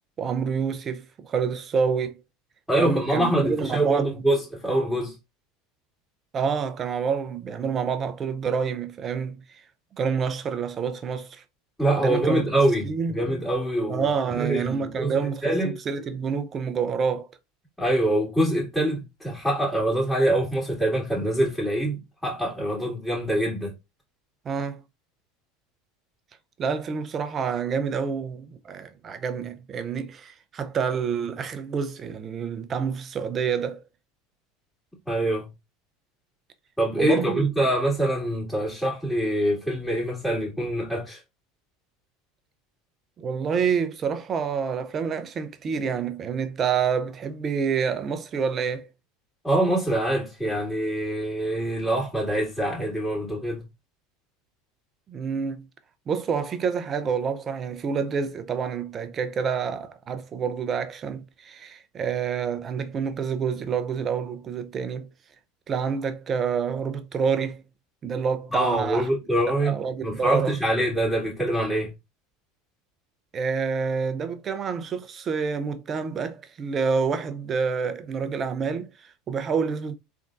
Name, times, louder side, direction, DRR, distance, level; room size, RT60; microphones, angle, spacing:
voice 1, 0.2-2.2 2.8-4.2 6.3-9.6 10.0-11.4 12.0-12.4 12.8-13.3 13.9-17.3 24.4-24.8 26.6-33.8 37.0-37.5 43.2-48.9 55.1-55.7 56.1-65.1 65.7-67.6 68.0-69.1 69.5-70.5 73.3-79.9, right 6 dB, 35° right, 0.6 m, -28 dB
voice 2, 2.7-5.1 11.8-15.7 17.8-23.7 35.1-35.5 36.8-41.2 49.4-53.6 68.5-69.8 70.0-71.9, right 1 dB, 10° left, 2.3 m, -25 dB
3.7 x 3.6 x 2.6 m
hypercardioid pair, 85°, 0 cm